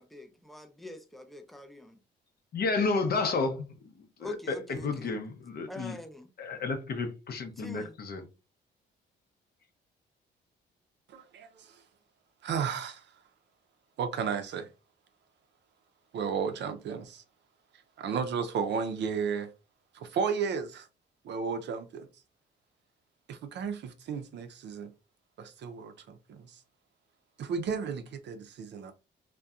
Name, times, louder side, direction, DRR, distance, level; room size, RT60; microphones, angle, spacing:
voice 1, 0.0-2.0 4.2-5.2 5.7-6.3 7.6-8.0, left 1 dB, ahead, 0.4 m, -44 dB
voice 2, 2.5-6.0 6.4-8.2, left 4 dB, 50° left, 0.6 m, -31 dB
voice 3, 11.1-11.7 12.4-13.0 14.0-14.7 16.1-17.2 18.0-19.5 19.9-20.9 21.2-22.1 23.3-24.9 25.4-26.5 27.4-28.9, right 6 dB, 60° right, 0.5 m, -33 dB
2.6 x 2.1 x 2.3 m
cardioid pair, 90°, 20 cm